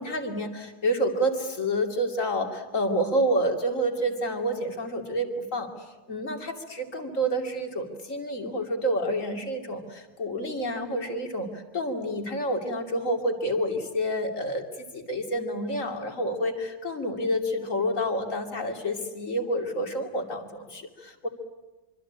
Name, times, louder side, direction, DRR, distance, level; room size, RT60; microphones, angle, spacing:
voice 1, 0.0-5.7 6.1-14.6 14.9-21.3, equal, 40° left, 4 dB, 3.2 m, -28 dB
25.5 x 25.0 x 8.7 m, 1.1 s
omnidirectional pair, 2.0 m